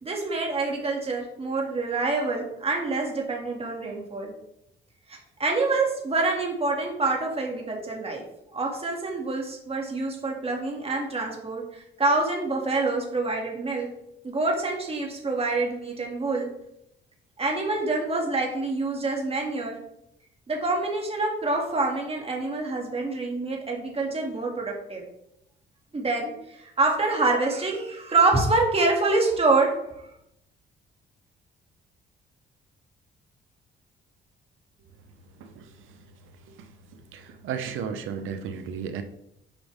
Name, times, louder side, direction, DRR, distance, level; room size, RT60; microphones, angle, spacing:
voice 1, 0.0-4.3 5.1-8.2 8.5-13.9 14.2-16.5 17.4-19.8 20.5-25.0 25.9-29.8, right 3 dB, 30° right, 0 dB, 2.1 m, -26 dB
voice 2, 37.1-39.0, right 7 dB, 85° right, 8 dB, 0.9 m, -33 dB
8.5 x 5.3 x 3.5 m, 0.79 s
cardioid pair, 90°, 20 cm